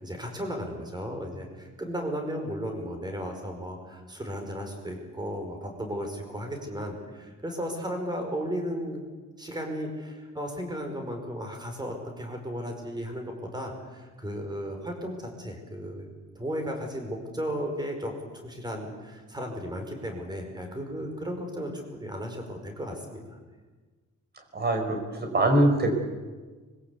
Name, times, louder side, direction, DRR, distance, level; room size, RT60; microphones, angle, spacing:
voice 1, 0.0-9.0 9.4-16.1 16.3-18.1 18.4-23.4, equal, 15° right, 3 dB, 5.0 m, -35 dB
voice 2, 24.5-25.9, right 1 dB, 30° right, 3 dB, 5.1 m, -23 dB
25.0 x 22.5 x 8.3 m, 1.3 s
wide cardioid pair, 175°, 30 cm